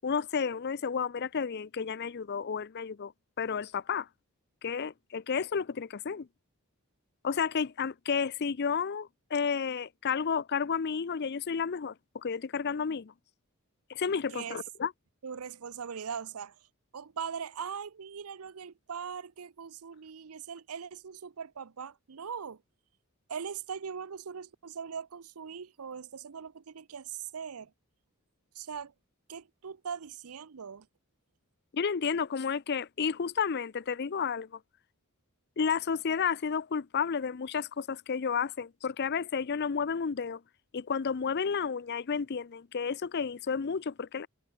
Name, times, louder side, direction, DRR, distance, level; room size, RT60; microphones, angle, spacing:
voice 1, 0.0-3.1 3.4-4.1 4.6-6.3 7.2-11.9 12.2-13.1 13.9-14.9 31.7-34.5 35.6-40.4 40.7-44.3, left 6 dB, 50° left, 0.5 m, -31 dB
voice 2, 15.2-16.5 16.9-22.6 23.3-27.7 28.5-28.9 29.3-30.9, right 7 dB, 85° right, 0.7 m, -40 dB
head